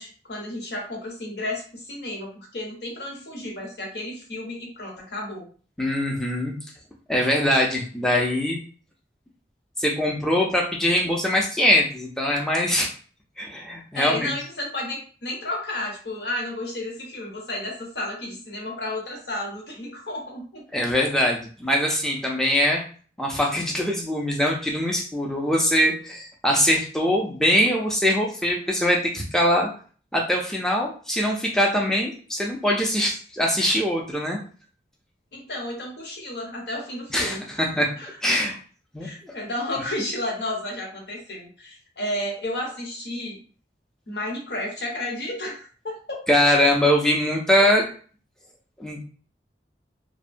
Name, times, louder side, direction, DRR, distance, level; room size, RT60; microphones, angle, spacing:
voice 1, 0.0-5.5 13.9-20.6 35.3-37.4 38.0-38.2 39.0-43.4 44.1-46.2, left 1 dB, 75° left, -1 dB, 1.0 m, -32 dB
voice 2, 5.8-6.5 7.1-8.6 9.8-12.9 13.4-14.3 20.7-22.8 23.2-29.7 30.1-34.4 37.1-38.5 38.9-39.3 46.3-47.8 48.8-49.1, equal, 5° left, -1 dB, 0.5 m, -22 dB
2.7 x 2.1 x 2.5 m, 0.41 s
head